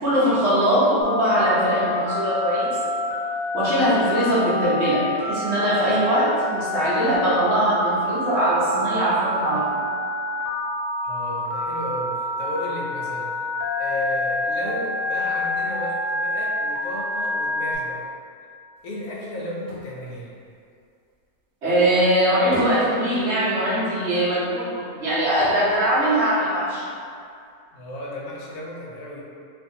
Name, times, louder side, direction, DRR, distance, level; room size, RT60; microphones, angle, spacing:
voice 1, 0.0-2.8 3.5-9.8 21.6-26.9, right 1 dB, 50° right, -9 dB, 0.9 m, -21 dB
Telephone, 1.0-17.8, left 2 dB, 90° left, 1.2 m, -27 dB
voice 2, 11.0-13.4 13.7-18.1 18.8-20.3 27.7-29.2, left 1 dB, 70° left, -4 dB, 0.9 m, -33 dB
sound 1, 18.8-21.4 21.8-24.0 24.4-24.5 24.8-24.9 25.4-26.9 27.5-27.6, equal, 75° right, 1.1 m, -38 dB
2.6 x 2.5 x 2.6 m, 2.4 s
omnidirectional pair, 1.8 m